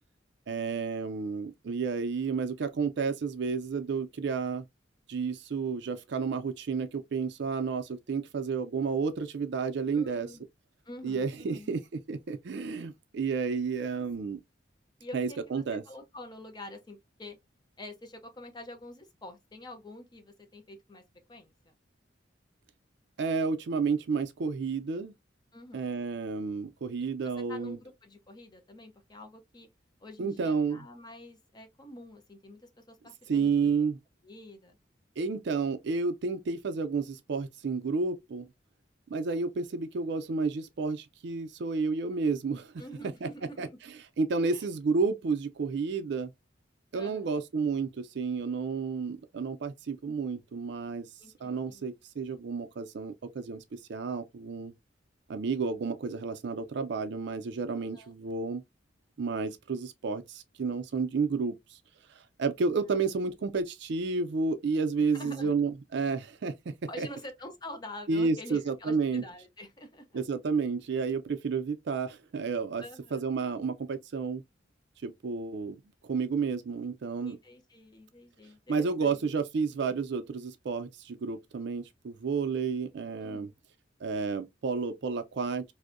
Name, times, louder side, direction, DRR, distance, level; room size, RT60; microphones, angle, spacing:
voice 1, 0.5-4.7 5.1-10.3 11.0-11.8 12.1-14.4 15.1-15.8 23.2-25.1 25.7-27.8 30.2-30.8 33.3-34.0 35.2-38.5 39.1-42.7 43.2-43.3 43.6-43.7 44.2-46.3 46.9-51.1 51.4-54.7 55.3-58.6 59.2-61.6 62.4-66.5 67.0-67.1 68.1-69.2 70.1-72.8 73.1-74.4 75.0-77.4 78.7-83.5 84.0-85.6, right 4 dB, 65° right, 0.4 m, -31 dB
voice 2, 9.9-10.5 10.8-11.7 15.0-17.4 17.8-21.0 21.3-21.7 25.5-26.0 27.2-29.7 30.0-33.7 34.2-34.8 42.8-43.8 44.5-44.7 46.9-47.3 51.2-51.9 57.7-58.1 62.8-63.0 65.0-65.5 66.9-70.2 72.8-73.3 77.2-79.2 83.2-83.5, left 1 dB, 25° left, 0.5 m, -47 dB
2.6 x 2.1 x 2.4 m
head